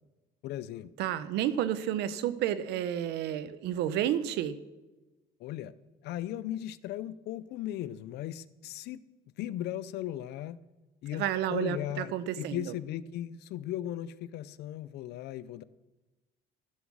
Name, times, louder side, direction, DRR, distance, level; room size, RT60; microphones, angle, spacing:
voice 1, 0.4-0.9 5.4-5.7 6.0-9.0 9.4-10.6 11.0-15.6, left 12 dB, 75° left, 17 dB, 0.5 m, -37 dB
voice 2, 1.0-4.6 11.1-12.6, right 11 dB, 85° right, 14 dB, 0.8 m, -31 dB
14.0 x 7.2 x 6.2 m, 1.1 s
cardioid pair, 110°, 17 cm